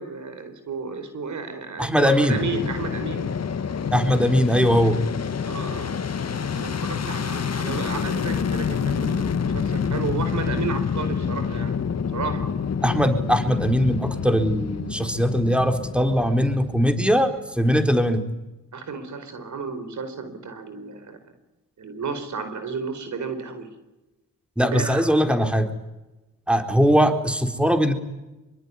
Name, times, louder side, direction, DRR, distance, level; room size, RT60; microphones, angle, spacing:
voice 1, 0.0-3.3 5.5-11.8 12.1-12.5 18.7-21.2 21.8-23.7 24.6-25.4, right 4 dB, 65° right, 9 dB, 4.4 m, -33 dB
voice 2, 1.8-2.4 3.9-5.0 12.8-17.3 17.6-18.2 24.6-25.7 26.5-27.9, equal, 5° right, 7 dB, 4.3 m, -20 dB
Fixed-wing aircraft airplane, 2.3-17.5, left 6 dB, 55° left, 2.0 m, -28 dB
26.0 x 23.0 x 10.0 m, 1.0 s
supercardioid pair, 45°, 31 cm